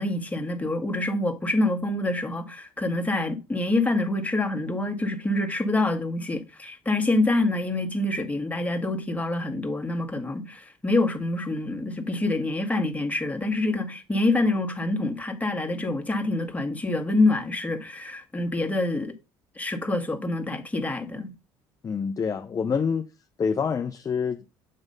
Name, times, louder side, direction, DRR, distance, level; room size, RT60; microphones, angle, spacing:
voice 1, 0.0-19.1 19.6-21.3, left 2 dB, 15° left, 1.4 m, -26 dB
voice 2, 21.8-23.1 23.4-24.4, left 6 dB, 30° left, 0.5 m, -26 dB
7.6 x 3.1 x 5.4 m
supercardioid pair, 75°, 11 cm